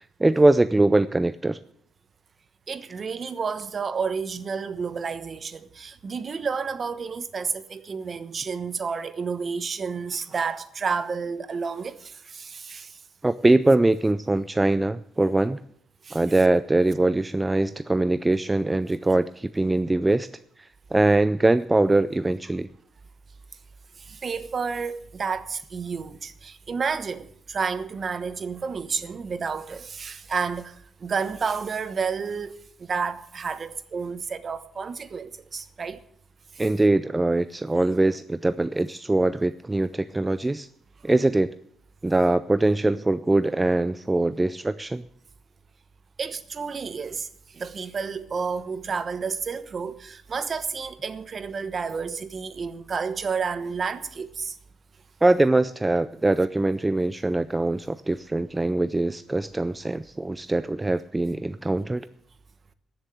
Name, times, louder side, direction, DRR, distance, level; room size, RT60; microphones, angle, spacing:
voice 1, 0.0-1.6 13.2-15.6 16.1-20.3 20.6-22.7 36.6-40.7 41.0-41.5 42.0-45.1 55.2-62.1, right 2 dB, 15° right, 0.4 m, -22 dB
voice 2, 2.7-13.0 16.0-16.2 24.0-36.0 36.5-36.6 46.2-47.3 47.5-54.6, right 5 dB, 40° right, 1.1 m, -31 dB
14.0 x 7.4 x 9.1 m
cardioid pair, 90°, 0 cm